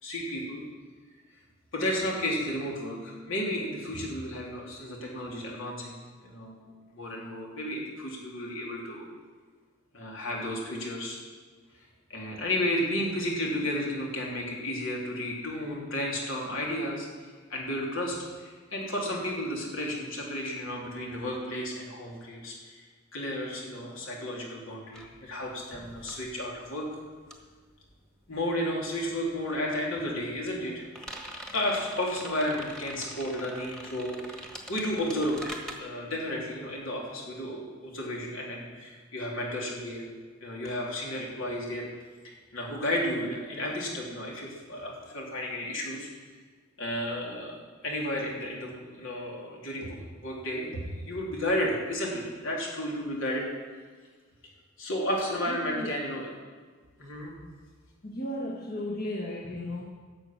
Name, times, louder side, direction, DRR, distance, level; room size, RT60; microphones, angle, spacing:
voice 1, 0.0-0.6 1.7-5.9 6.2-6.6 6.9-9.1 9.9-11.2 12.1-17.1 17.5-22.8 23.1-26.9 28.3-30.8 31.5-34.4 34.7-35.5 35.8-40.1 40.4-41.9 42.2-46.1 46.8-47.6 47.8-53.5 54.8-56.3 57.0-57.3, left 1 dB, 80° left, -2 dB, 3.3 m, -32 dB
sound 1, 24.9-28.8 29.0-35.7, right 1 dB, 5° left, 1.3 m, -45 dB
voice 2, 55.5-55.9 58.0-59.8, left 1 dB, 45° left, -2 dB, 1.4 m, -35 dB
12.0 x 7.4 x 8.9 m, 1.5 s
head